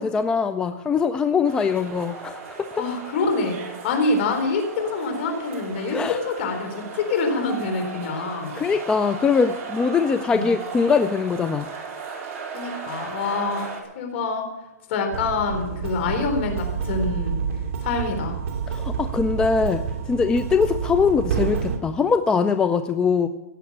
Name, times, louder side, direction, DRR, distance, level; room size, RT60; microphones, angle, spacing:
voice 1, 0.0-2.8 5.9-6.2 8.1-8.2 8.6-11.7 18.7-23.3, left 5 dB, 10° left, 9 dB, 0.4 m, -22 dB
sound 1, 1.4-13.8, right 5 dB, 30° right, 3.7 m, -37 dB
voice 2, 2.8-3.5 3.8-8.6 10.3-10.5 12.5-14.4 14.9-17.4 17.8-18.4, left 3 dB, 45° left, 5 dB, 3.8 m, -26 dB
sound 2, 15.1-21.8, right 7 dB, 50° right, 2.3 m, -28 dB
17.0 x 7.0 x 8.5 m, 1.1 s
hypercardioid pair, 155°, 9 cm